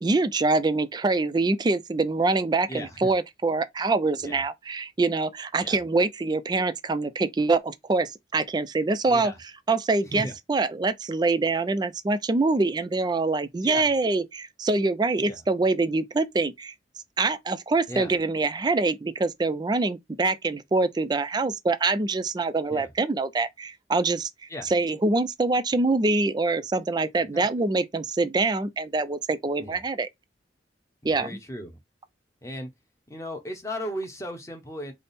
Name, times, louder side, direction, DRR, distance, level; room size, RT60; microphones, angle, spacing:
voice 1, 0.0-9.3 9.7-16.7 17.2-24.3 24.6-30.1 31.0-31.3, right 3 dB, 25° right, 0.4 m, -25 dB
voice 2, 2.7-3.1 4.2-4.4 5.6-5.8 9.1-9.4 10.1-10.3 13.6-13.9 15.2-15.4 17.9-18.1 22.7-22.9 24.5-24.7 27.3-27.5 29.6-29.8 31.0-31.8 32.4-32.7 33.1-34.9, equal, 15° left, 0.9 m, -36 dB
3.4 x 2.0 x 4.1 m
head